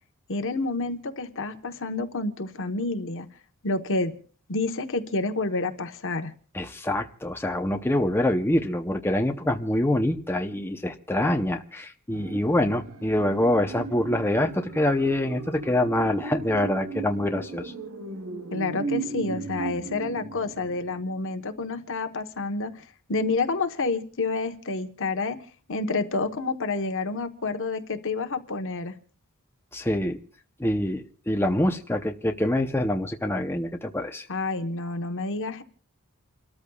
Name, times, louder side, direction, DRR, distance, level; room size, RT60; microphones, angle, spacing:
voice 1, 0.3-3.3 3.6-4.1 4.5-6.3 18.5-22.8 23.1-25.4 25.7-28.9 34.3-35.6, left 3 dB, 60° left, 7 dB, 1.2 m, -29 dB
voice 2, 6.5-17.7 29.7-30.2 30.6-34.2, left 1 dB, 10° left, 4 dB, 0.8 m, -25 dB
sound 1, 12.1-21.2 21.6-21.7, right 4 dB, 65° right, 1.2 m, -37 dB
29.5 x 13.5 x 2.4 m, 0.42 s
head